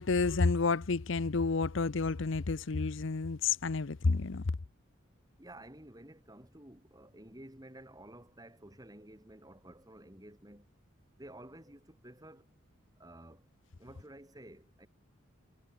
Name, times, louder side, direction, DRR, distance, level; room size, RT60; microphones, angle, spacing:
voice 1, 0.0-4.4, left 4 dB, 65° left, 0.7 m, -30 dB
voice 2, 5.4-10.7 11.2-12.5 13.0-13.5 13.8-14.9, right 1 dB, 20° right, 4.0 m, -52 dB
head